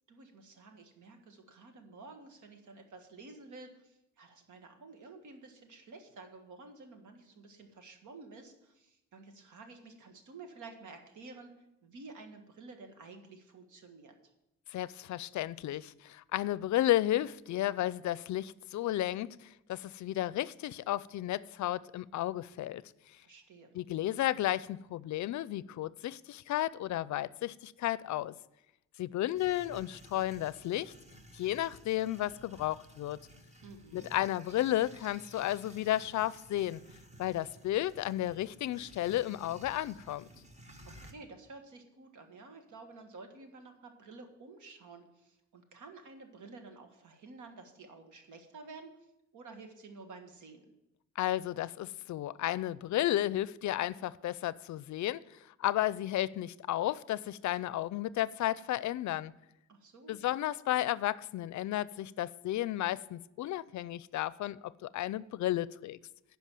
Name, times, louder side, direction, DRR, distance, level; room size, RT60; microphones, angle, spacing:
voice 1, 0.1-14.1 23.2-23.7 33.6-34.1 40.8-48.9 49.3-50.7 59.7-60.2, right 3 dB, 80° right, 1.6 m, -51 dB
voice 2, 14.7-22.8 23.7-28.3 29.0-30.9 31.3-33.2 33.9-36.8 37.2-40.3 51.2-55.2 55.6-59.3 60.1-66.0, left 14 dB, 70° left, 0.5 m, -33 dB
sound 1, 29.4-41.1, right 1 dB, 25° right, 1.4 m, -55 dB
10.0 x 5.6 x 7.4 m
cardioid pair, 80°, 29 cm